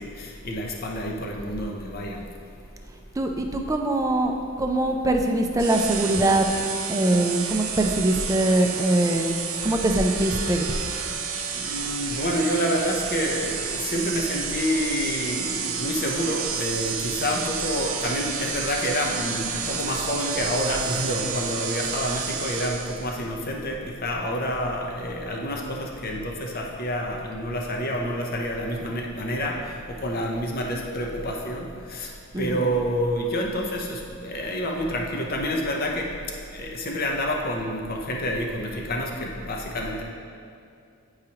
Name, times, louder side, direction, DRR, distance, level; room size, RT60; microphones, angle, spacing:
voice 1, 0.0-2.2 11.5-29.6 30.0-32.1 32.4-36.1 36.5-40.0, equal, 45° left, 0 dB, 0.8 m, -28 dB
voice 2, 3.2-4.3 4.6-10.7 32.3-32.7, right 1 dB, 15° right, 3 dB, 0.4 m, -23 dB
sound 1, 5.6-23.2, right 6 dB, 70° right, 0.6 m, -30 dB
9.1 x 4.8 x 2.9 m, 2.4 s
head